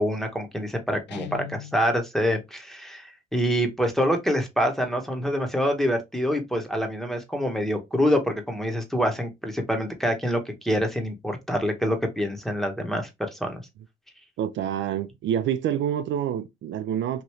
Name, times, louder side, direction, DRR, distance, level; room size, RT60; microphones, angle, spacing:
voice 1, 0.0-13.6, equal, ahead, 0.9 m, -26 dB
Guitar, 1.1-1.9, left 12 dB, 65° left, 0.5 m, -38 dB
voice 2, 14.4-17.2, right 10 dB, 70° right, 0.4 m, -27 dB
3.0 x 2.6 x 3.0 m
cardioid pair, 90°, 20 cm